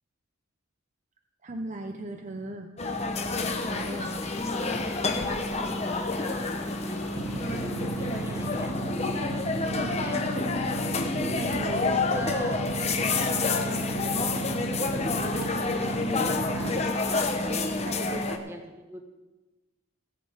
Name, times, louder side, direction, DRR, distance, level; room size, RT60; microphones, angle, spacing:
voice 1, 1.4-2.7 3.7-4.1 9.7-9.9 11.3-12.0 15.7-15.8 17.8-18.2, right 1 dB, 35° right, 4 dB, 0.7 m, -37 dB
sound 1, 2.8-18.4, left 3 dB, 30° left, 0.9 m, -28 dB
sound 2, 3.1-9.8, left 1 dB, 15° left, 1.7 m, -46 dB
voice 2, 4.5-6.6 6.9-7.0 7.4-8.7 9.8-10.2 11.8-12.6 13.4-14.9 15.8-16.9 18.1-19.0, equal, 10° right, 2 dB, 1.5 m, -42 dB
sound 3, 7.1-16.9, right 5 dB, 75° right, 0.4 m, -37 dB
18.0 x 7.6 x 5.1 m, 1.2 s
head